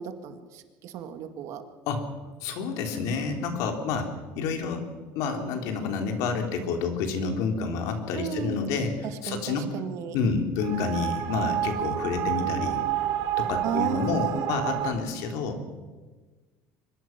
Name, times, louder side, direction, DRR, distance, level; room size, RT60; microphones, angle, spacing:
voice 1, 0.0-1.6 8.1-8.6 9.3-10.2 13.6-14.5, right 9 dB, 55° right, 8 dB, 2.0 m, -34 dB
voice 2, 2.4-4.1 4.4-4.8 5.1-8.9 9.2-9.7 10.1-12.8 13.4-15.6, left 5 dB, 65° left, 5 dB, 3.3 m, -29 dB
sound 1, 10.6-14.9, right 12 dB, 70° right, 3.6 m, -29 dB
23.5 x 21.5 x 6.0 m, 1.3 s
cardioid pair, 160°, 6 cm